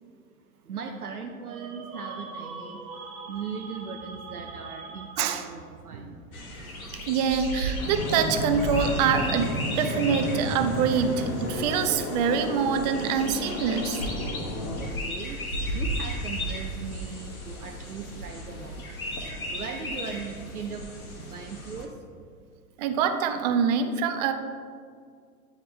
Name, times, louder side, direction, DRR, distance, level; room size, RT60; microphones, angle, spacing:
voice 1, 0.7-2.9 3.3-6.2 14.8-15.4 15.7-18.9 19.5-20.9 21.1-21.9, right 6 dB, 80° right, 2 dB, 0.6 m, -38 dB
sound 1, 1.5-5.6, right 4 dB, 65° right, 1.1 m, -42 dB
sound 2, 6.3-21.9, equal, 70° left, 1.4 m, -35 dB
voice 2, 7.1-14.0 22.8-24.3, right 7 dB, 30° right, 7 dB, 0.4 m, -25 dB
Fixed-wing aircraft airplane, 7.8-14.9, left 1 dB, 40° left, 1.1 m, -32 dB
8.9 x 3.6 x 4.3 m, 2.1 s
figure-of-eight pair, 95°, 44 cm